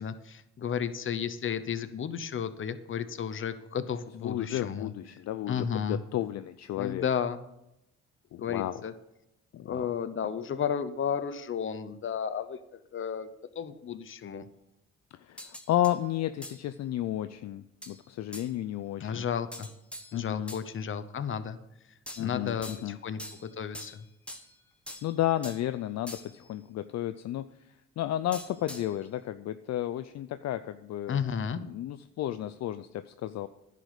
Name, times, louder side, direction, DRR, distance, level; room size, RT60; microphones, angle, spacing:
voice 1, 0.0-4.9 5.5-6.0 6.8-7.4 8.4-8.9 9.7-12.6 12.9-13.3 13.5-14.5 19.0-19.7 20.1-21.6 22.2-23.2 23.6-24.1 31.1-31.6, left 7 dB, 40° left, 12 dB, 0.8 m, -33 dB
voice 2, 4.2-7.0 8.3-8.8 9.5-9.9 15.3-19.3 20.1-20.5 22.2-23.0 25.0-27.5 28.0-31.2 31.6-33.5, left 13 dB, 60° left, 11 dB, 0.5 m, -32 dB
sound 1, 15.4-16.0 16.4-16.6 17.8-18.0 18.3-18.5 19.5-20.7 22.1-22.9 23.2-24.5 24.9-25.7 26.1-26.5 28.3-29.0, left 1 dB, 5° left, 1.3 m, -44 dB
10.5 x 5.0 x 7.9 m, 0.89 s
cardioid pair, 90°, 30 cm